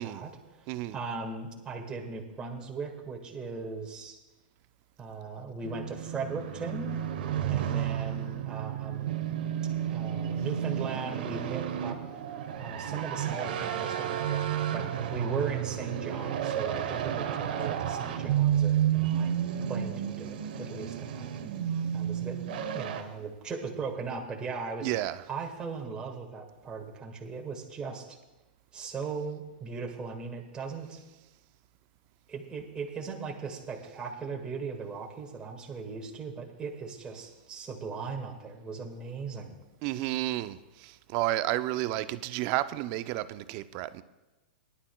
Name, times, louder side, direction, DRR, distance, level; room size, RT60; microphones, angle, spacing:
voice 1, 0.0-0.7 0.9-4.2 5.0-7.0 7.5-9.4 9.9-12.0 12.6-19.3 19.6-21.3 21.9-22.4 22.7-24.9 25.3-28.0 28.7-31.0 32.3-39.5, right 4 dB, 15° right, 1.7 m, -38 dB
voice 2, 0.7-1.0 24.8-25.2 39.8-44.0, right 15 dB, 45° right, 0.5 m, -31 dB
sound 1, 5.6-23.0, right 10 dB, 70° right, 1.1 m, -31 dB
20.0 x 11.0 x 2.3 m
hypercardioid pair, 130°, 5 cm